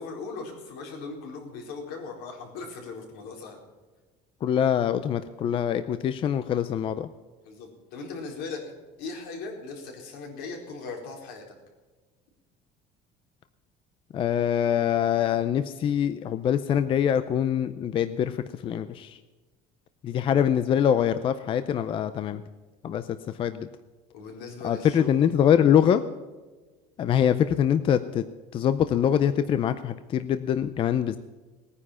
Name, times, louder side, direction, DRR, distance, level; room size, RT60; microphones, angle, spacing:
voice 1, 0.0-3.6 7.4-8.6 9.0-11.4 24.1-25.2, left 4 dB, 75° left, 2 dB, 4.1 m, -38 dB
voice 2, 4.4-7.1 14.1-19.2 20.0-22.4 22.8-23.7 24.6-26.0 27.0-28.2 28.5-31.2, left 9 dB, 30° left, 12 dB, 0.5 m, -24 dB
19.0 x 9.7 x 5.7 m, 1.3 s
cardioid pair, 165°, 16 cm